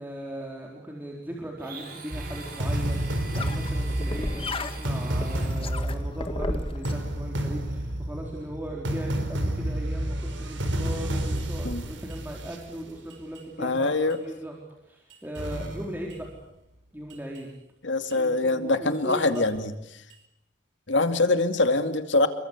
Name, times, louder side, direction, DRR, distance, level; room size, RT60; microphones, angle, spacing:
voice 1, 0.0-14.6 14.8-16.3 16.9-17.5 18.1-19.4, right 1 dB, 10° right, -1 dB, 4.3 m, -38 dB
Domestic sounds home sounds, 1.6-6.0, right 3 dB, 50° right, 6.7 m, -43 dB
sound 1, 2.1-13.4 14.1-14.2 15.1-16.4 17.1-17.4 18.1-18.2 19.1-19.4 20.1-20.2, right 1 dB, 70° right, 4.7 m, -30 dB
sound 2, 2.5-6.9, left 2 dB, 30° left, 1.6 m, -35 dB
voice 2, 13.6-14.2 17.8-20.0 20.9-22.3, left 2 dB, 70° left, 9 dB, 2.4 m, -24 dB
29.0 x 23.0 x 8.2 m, 0.79 s
head